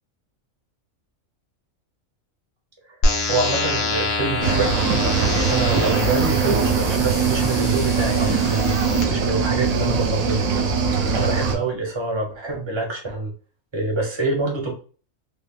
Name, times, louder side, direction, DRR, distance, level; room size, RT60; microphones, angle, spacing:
sound 1, 3.0-9.0, left 2 dB, 75° left, 1.1 m, -26 dB
voice 1, 3.3-8.8 9.1-10.5 11.1-13.3 13.7-14.7, right 3 dB, 40° right, 0 dB, 0.4 m, -26 dB
Cricket / Waves surf, 4.4-11.5, right 5 dB, 85° right, 1.0 m, -21 dB
3.3 x 2.1 x 2.2 m, 0.39 s
omnidirectional pair, 1.4 m